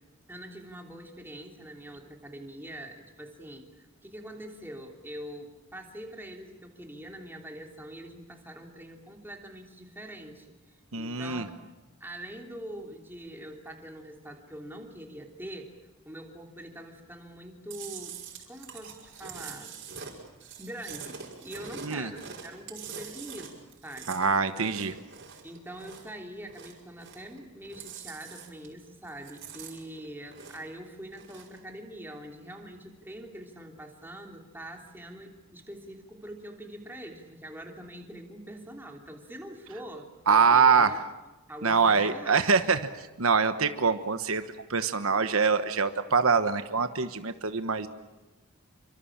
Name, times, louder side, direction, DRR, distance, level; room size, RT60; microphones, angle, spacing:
voice 1, 0.3-11.7 12.0-15.7 16.0-18.2 18.5-19.7 20.6-24.2 25.4-41.0 41.5-42.6, right 1 dB, 10° right, 2 dB, 3.2 m, -44 dB
voice 2, 10.9-11.5 21.8-22.1 24.1-24.9 40.3-41.0 41.6-44.4 44.7-47.9, right 5 dB, 70° right, 9 dB, 1.2 m, -24 dB
Chewing mastication, 17.7-26.2 26.4-27.4 27.6-28.8 29.1-30.8 31.1-31.6, right 6 dB, 55° right, 5.3 m, -44 dB
28.5 x 24.5 x 7.4 m, 1.1 s
head